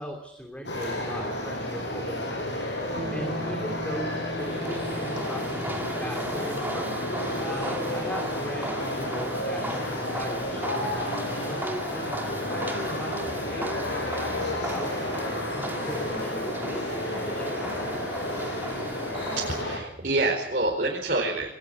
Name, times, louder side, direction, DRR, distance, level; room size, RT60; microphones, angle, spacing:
voice 1, 0.0-2.5 2.8-7.1 7.4-17.8, equal, 5° left, 4 dB, 2.9 m, -39 dB
sound 1, 0.6-19.8, left 1 dB, 75° left, 6.5 m, -31 dB
sound 2, 2.9-11.8, equal, 90° right, 4.2 m, -42 dB
sound 3, 4.4-19.6, right 1 dB, 10° right, 2.1 m, -37 dB
voice 2, 19.3-21.5, right 2 dB, 50° right, -3 dB, 4.6 m, -27 dB
22.0 x 19.0 x 8.2 m, 0.80 s
head